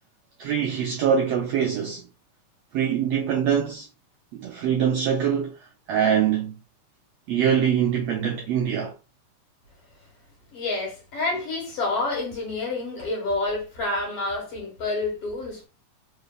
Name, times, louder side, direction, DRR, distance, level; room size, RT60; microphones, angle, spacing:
voice 1, 0.4-2.0 2.7-3.9 4.3-5.5 5.9-6.6 7.3-8.9, right 8 dB, 85° right, 1.4 m, -23 dB
voice 2, 10.5-15.7, left 2 dB, 50° left, 2.2 m, -28 dB
5.2 x 3.3 x 2.3 m
omnidirectional pair, 3.7 m